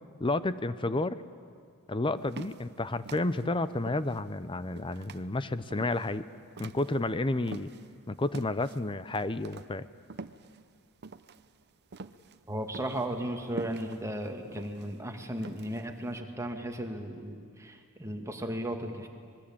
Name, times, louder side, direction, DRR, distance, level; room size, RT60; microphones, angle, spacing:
voice 1, 0.2-1.2 1.9-6.3 6.6-7.7 8.1-9.9, left 2 dB, 25° left, 14 dB, 0.7 m, -31 dB
sound 1, 2.2-8.0 8.3-16.1, right 3 dB, 50° right, 0.7 m, -46 dB
voice 2, 12.5-19.1, right 1 dB, 15° right, 4 dB, 2.0 m, -35 dB
25.5 x 21.5 x 8.7 m, 2.2 s
head